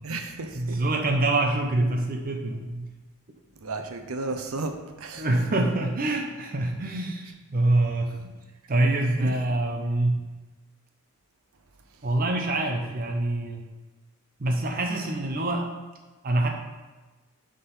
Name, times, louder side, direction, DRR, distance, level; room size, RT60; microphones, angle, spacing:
voice 1, 0.0-0.8 3.6-5.3 9.2-9.3, right 3 dB, 90° right, 6 dB, 0.7 m, -33 dB
voice 2, 0.5-2.9 5.2-8.3 8.7-10.2 12.0-13.6 14.4-15.7 16.2-16.5, right 2 dB, 45° right, 2 dB, 0.6 m, -25 dB
6.8 x 3.8 x 5.4 m, 1.2 s
head